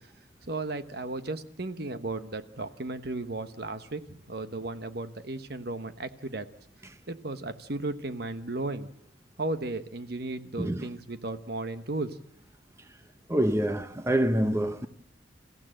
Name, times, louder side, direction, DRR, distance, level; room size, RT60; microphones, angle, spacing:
voice 1, 0.4-6.5 7.1-8.9 9.4-12.2, right 2 dB, 55° right, 1.2 m, -35 dB
voice 2, 13.3-14.9, right 1 dB, 15° right, 0.8 m, -26 dB
28.5 x 15.0 x 7.7 m
head